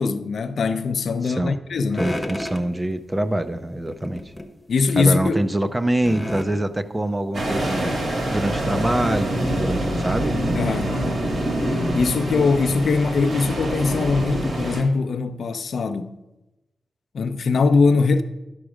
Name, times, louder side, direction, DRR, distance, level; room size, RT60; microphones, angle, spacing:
voice 1, 0.0-2.1 4.7-5.4 10.5-10.9 11.9-16.1 17.1-18.2, left 4 dB, 65° left, 0.6 m, -21 dB
voice 2, 1.2-1.6 2.0-4.2 5.0-7.9 8.3-10.8, right 1 dB, 15° right, 0.5 m, -25 dB
sound 1, 2.0-2.7 3.9-4.5 4.9-5.0 6.0-6.5 7.8-7.9 8.3-8.4 9.0-9.1, left 1 dB, 5° left, 0.9 m, -30 dB
sound 2, 7.3-14.8, right 1 dB, 55° right, 2.1 m, -25 dB
11.5 x 6.0 x 4.9 m
wide cardioid pair, 130°, 0 cm